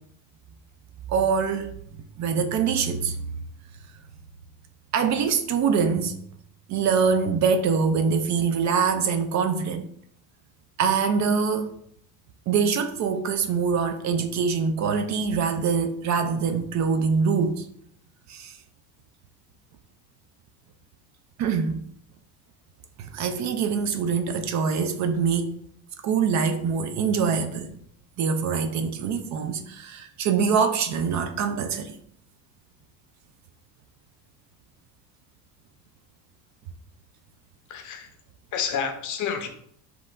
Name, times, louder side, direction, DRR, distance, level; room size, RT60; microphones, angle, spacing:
voice 1, 1.1-1.7 2.2-3.2 4.9-6.1 6.7-9.9 10.8-11.8 12.5-17.7 18.3-18.6 21.4-21.8 23.0-25.5 26.0-27.7 28.2-31.9, right 6 dB, 45° right, 7 dB, 0.5 m, -24 dB
voice 2, 37.7-38.1 38.5-39.5, left 7 dB, 45° left, 6 dB, 0.7 m, -29 dB
5.4 x 3.0 x 2.5 m, 0.68 s
cardioid pair, 115°, 42 cm